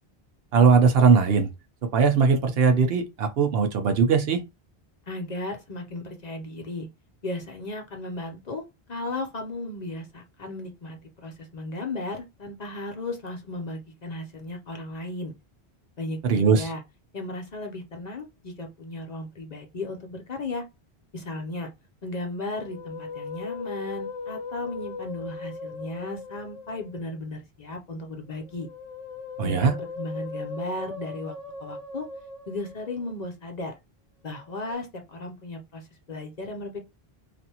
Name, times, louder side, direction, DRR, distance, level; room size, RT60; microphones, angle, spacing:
voice 1, 0.5-1.5 1.9-4.4 16.2-16.7 29.4-29.7, right 5 dB, 70° right, 0.9 m, -20 dB
voice 2, 5.1-6.9 7.2-8.6 8.9-15.3 16.0-16.8 17.1-20.6 21.1-21.7 22.0-28.7 29.4-31.3 31.6-32.1 32.5-33.8 34.2-36.8, left 2 dB, 45° left, 0.7 m, -35 dB
Musical instrument, 22.4-27.1 28.4-33.2 34.3-34.7, left 3 dB, 5° left, 0.9 m, -38 dB
3.2 x 2.6 x 2.8 m
omnidirectional pair, 1.1 m